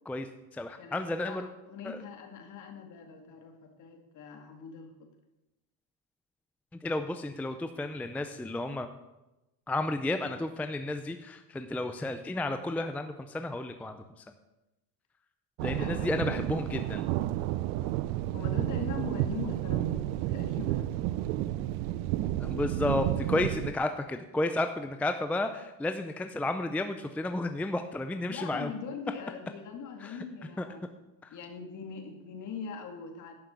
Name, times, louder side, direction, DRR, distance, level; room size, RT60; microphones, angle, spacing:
voice 1, 0.1-1.5 1.8-2.0 6.8-8.9 9.7-14.0 15.6-17.0 22.4-28.7 30.0-30.2 30.6-30.7 31.2-31.4, left 2 dB, 5° left, 7 dB, 0.5 m, -32 dB
voice 2, 0.8-5.1 15.8-16.3 18.3-21.0 23.4-23.5 28.3-31.0 31.3-33.3, left 5 dB, 50° left, 4 dB, 2.2 m, -42 dB
sound 1, 15.6-23.7, right 14 dB, 90° right, 0.6 m, -31 dB
11.5 x 6.0 x 8.1 m, 0.98 s
cardioid pair, 135°, 39 cm